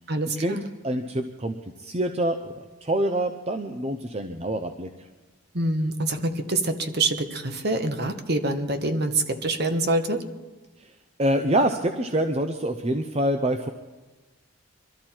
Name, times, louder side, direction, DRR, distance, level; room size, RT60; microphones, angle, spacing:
voice 1, 0.1-0.6 5.5-10.2, right 2 dB, 45° right, 7 dB, 1.2 m, -26 dB
voice 2, 0.8-2.5 2.8-4.9 10.8-10.9 11.2-13.7, right 1 dB, 30° right, 6 dB, 0.6 m, -26 dB
24.0 x 13.0 x 4.4 m, 1.2 s
head